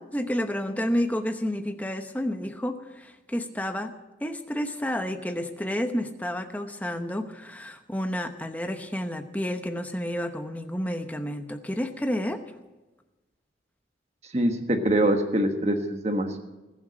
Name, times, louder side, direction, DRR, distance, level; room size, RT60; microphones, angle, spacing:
voice 1, 0.0-3.9 4.2-12.4, equal, 10° left, 7 dB, 0.9 m, -30 dB
voice 2, 14.3-16.4, right 1 dB, 35° right, 5 dB, 1.4 m, -24 dB
20.5 x 7.2 x 7.6 m, 1.1 s
head